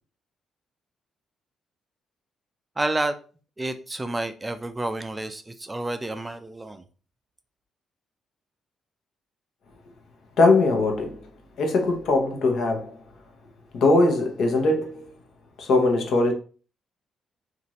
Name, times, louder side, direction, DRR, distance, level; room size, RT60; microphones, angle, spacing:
voice 1, 2.8-3.2 3.6-6.8, right 2 dB, 15° right, 0.3 m, -29 dB
voice 2, 10.4-11.3 11.6-13.0 13.7-15.1 15.6-16.3, left 2 dB, 70° left, 0.8 m, -21 dB
2.7 x 2.5 x 3.0 m
cardioid pair, 90°, 0 cm